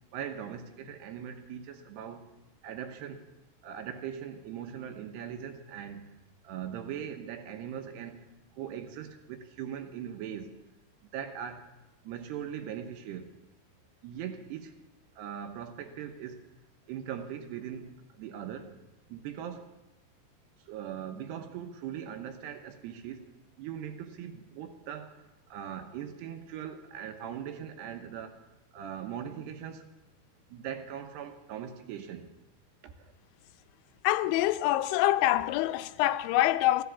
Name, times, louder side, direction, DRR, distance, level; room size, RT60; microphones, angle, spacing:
voice 1, 0.1-2.3 2.6-3.3 3.6-6.2 6.4-8.2 8.5-10.5 11.0-11.7 12.0-13.4 14.0-14.8 15.2-16.4 16.9-18.8 19.1-19.7 20.7-29.9 30.5-32.3 32.8-33.1, right 9 dB, 75° right, 2.9 m, -40 dB
voice 2, 34.0-36.8, left 15 dB, 90° left, 3.0 m, -25 dB
15.0 x 13.0 x 7.0 m
omnidirectional pair, 5.2 m